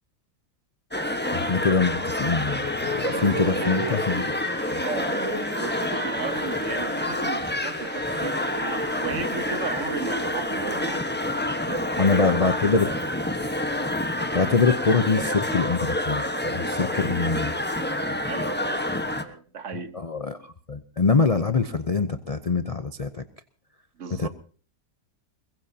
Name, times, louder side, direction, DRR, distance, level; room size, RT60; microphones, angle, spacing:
sound 1, 0.9-19.2, left 1 dB, 5° left, 1.0 m, -28 dB
voice 1, 1.3-4.2 4.7-4.8 12.0-12.9 14.3-17.5 19.9-23.2 24.2-24.3, left 4 dB, 40° left, 0.5 m, -24 dB
sound 2, 2.4-10.6, left 2 dB, 80° left, 4.3 m, -45 dB
voice 2, 3.1-4.0 4.8-11.0 11.7-12.6 18.0-18.9 19.2-20.0 24.0-24.3, right 5 dB, 50° right, 1.3 m, -34 dB
22.0 x 21.5 x 2.8 m
omnidirectional pair, 1.8 m